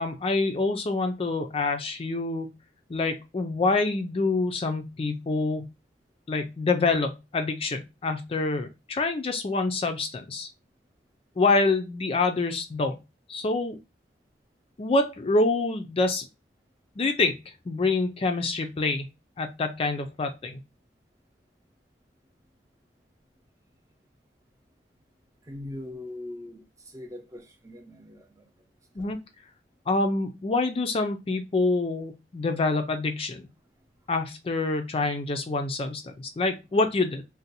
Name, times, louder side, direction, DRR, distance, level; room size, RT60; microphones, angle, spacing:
voice 1, 0.0-2.5 2.9-5.7 6.3-10.5 11.4-13.0 13.3-13.8 14.8-16.3 17.0-17.4 17.7-19.1 19.4-20.6 29.0-29.2 29.9-33.5 34.1-37.2, left 3 dB, 35° left, 0.4 m, -26 dB
voice 2, 25.4-28.5 29.0-29.1, left 1 dB, 20° right, 0.6 m, -41 dB
2.6 x 2.1 x 4.0 m
head